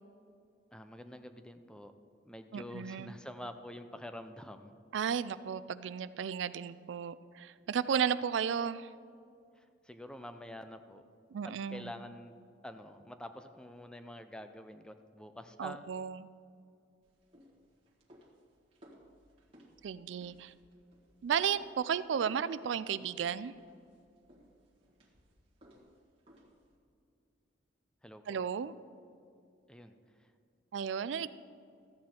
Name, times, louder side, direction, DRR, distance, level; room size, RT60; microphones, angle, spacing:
voice 1, 0.7-1.9 2.2-4.7 9.6-11.0 11.4-12.3 12.6-15.9 28.0-28.4 29.7-30.3, left 1 dB, 5° left, 8 dB, 0.5 m, -47 dB
voice 2, 2.5-3.1 4.9-8.9 11.3-11.9 15.6-16.3 19.8-20.5 21.2-23.5 28.3-28.7 30.7-31.3, right 7 dB, 85° right, 16 dB, 0.3 m, -34 dB
sound 1, 17.0-26.8, equal, 35° right, 1.6 m, -60 dB
13.5 x 8.6 x 4.4 m, 2.4 s
head